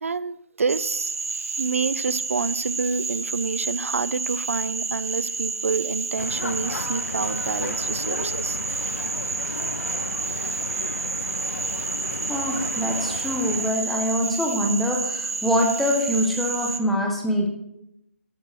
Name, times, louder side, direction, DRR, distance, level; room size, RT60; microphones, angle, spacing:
voice 1, 0.0-1.2 1.6-8.6, right 5 dB, 65° right, 17 dB, 0.6 m, -28 dB
Cricket / Frog, 0.7-16.8, right 4 dB, 80° right, 1.3 m, -30 dB
sound 1, 6.2-13.7, left 4 dB, 80° left, 0.9 m, -34 dB
voice 2, 12.3-17.5, equal, ahead, 0 dB, 0.4 m, -24 dB
12.0 x 7.4 x 4.8 m, 0.81 s
hypercardioid pair, 180°, 8 cm